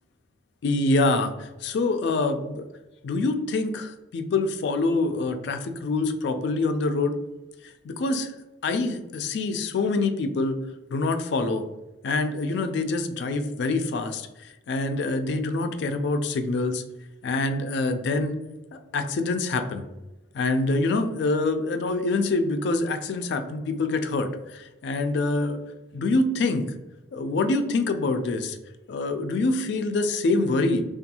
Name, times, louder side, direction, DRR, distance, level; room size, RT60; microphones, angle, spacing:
voice 1, 0.6-2.7 3.0-7.2 7.6-8.3 8.6-10.6 10.9-11.6 12.0-16.8 17.2-18.4 18.7-19.8 20.3-25.6 25.9-26.6 27.1-28.6 28.9-30.8, left 3 dB, 60° left, 7 dB, 0.3 m, -25 dB
2.6 x 2.3 x 2.7 m, 1.1 s
head